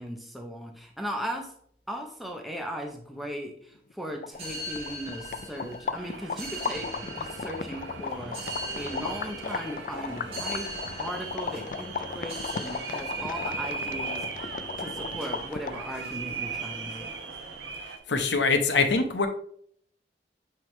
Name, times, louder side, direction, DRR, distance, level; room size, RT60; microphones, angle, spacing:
voice 1, 0.0-1.5 1.9-10.7 11.0-17.1, equal, ahead, 2 dB, 0.6 m, -38 dB
sound 1, 3.9-4.0 4.2-15.9, left 5 dB, 45° left, 0.3 m, -36 dB
sound 2, 4.3-17.8, right 1 dB, 35° right, 2.2 m, -41 dB
sound 3, 5.9-18.0, right 5 dB, 85° right, 0.9 m, -39 dB
voice 2, 18.1-19.3, left 4 dB, 75° left, 6 dB, 0.9 m, -23 dB
9.1 x 3.4 x 3.1 m, 0.62 s
head